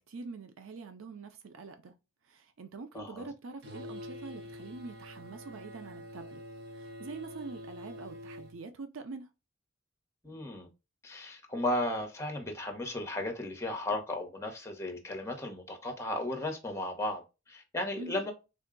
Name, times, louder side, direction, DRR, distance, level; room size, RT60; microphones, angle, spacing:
voice 1, 0.0-1.9 2.3-6.4 6.7-9.3 18.0-18.2, right 4 dB, 85° right, 0.5 m, -45 dB
voice 2, 2.9-3.3 10.2-10.7 11.0-18.3, left 1 dB, 15° left, 0.9 m, -35 dB
sound 1, 3.6-8.6, left 1 dB, 55° right, 1.0 m, -46 dB
3.7 x 2.2 x 3.6 m
head